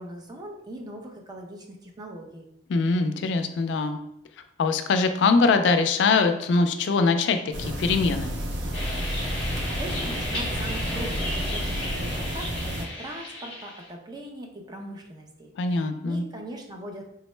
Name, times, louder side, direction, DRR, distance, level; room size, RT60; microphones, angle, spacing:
voice 1, 0.0-2.4 9.7-17.2, right 1 dB, 20° right, 1 dB, 0.4 m, -40 dB
voice 2, 2.7-4.0 4.6-8.3 15.6-16.2, left 4 dB, 65° left, 8 dB, 0.3 m, -22 dB
sound 1, 7.5-12.9, equal, 70° right, 0.5 m, -31 dB
sound 2, 8.7-13.9, left 1 dB, 30° left, 0.8 m, -34 dB
3.6 x 2.1 x 3.1 m, 0.80 s
head